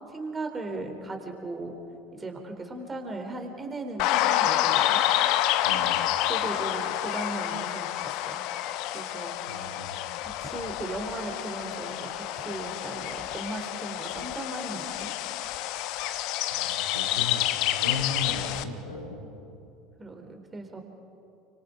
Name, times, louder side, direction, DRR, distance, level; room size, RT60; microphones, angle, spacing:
voice 1, 0.1-1.8 2.1-5.0 6.2-8.4 8.9-9.7 10.2-15.1 20.0-20.8, right 2 dB, 20° right, 4 dB, 3.4 m, -37 dB
sound 1, 4.0-18.6, left 13 dB, 55° left, 0.8 m, -28 dB
voice 2, 5.6-6.0 9.5-10.1 16.5-17.5 17.8-19.3, left 3 dB, 80° left, 1 dB, 2.7 m, -36 dB
30.0 x 25.0 x 3.8 m, 2.8 s
figure-of-eight pair, 70°, 0 cm